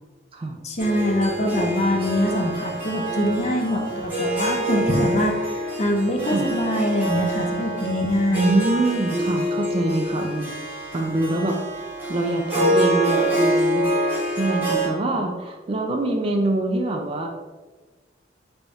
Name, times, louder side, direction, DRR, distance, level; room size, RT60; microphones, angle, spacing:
voice 1, 0.6-8.6, left 1 dB, 35° left, 3 dB, 0.6 m, -24 dB
Harp, 0.8-14.9, right 1 dB, 10° right, 1.3 m, -26 dB
voice 2, 8.3-10.5 10.9-11.6 12.1-13.9 14.4-17.3, right 2 dB, 30° right, 2 dB, 0.4 m, -24 dB
3.4 x 3.4 x 4.0 m, 1.3 s
head